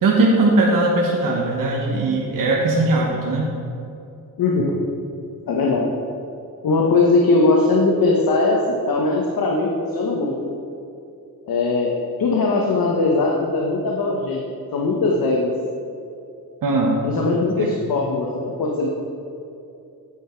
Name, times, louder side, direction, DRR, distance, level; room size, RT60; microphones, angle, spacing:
voice 1, 0.0-3.5 16.6-17.0 17.6-17.7, right 2 dB, 60° right, -2 dB, 1.3 m, -19 dB
voice 2, 4.4-4.7 5.5-5.9 6.6-10.5 11.5-11.9 12.2-14.4 14.7-15.5 17.0-18.9, left 3 dB, 70° left, -1 dB, 1.2 m, -20 dB
9.5 x 7.7 x 4.5 m, 2.6 s
cardioid pair, 105°, 37 cm